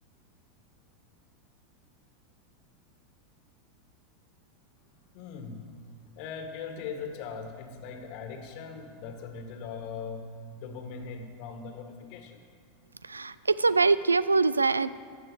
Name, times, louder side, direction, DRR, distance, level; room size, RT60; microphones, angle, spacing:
voice 1, 5.1-5.8 6.1-12.4, left 5 dB, 50° left, 6 dB, 1.6 m, -40 dB
voice 2, 13.0-14.9, right 4 dB, 90° right, 16 dB, 0.3 m, -24 dB
14.5 x 9.2 x 4.9 m, 2.1 s
figure-of-eight pair, 90°, 0 cm